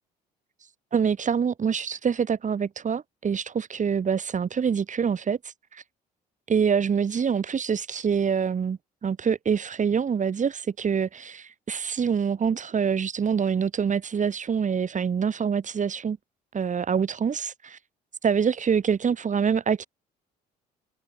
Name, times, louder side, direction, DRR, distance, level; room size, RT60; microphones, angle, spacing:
voice 1, 0.9-5.4 6.5-16.2 16.5-17.8 18.2-19.9, right 6 dB, 40° right, 4.9 m, -25 dB
supercardioid pair, 70°, 19 cm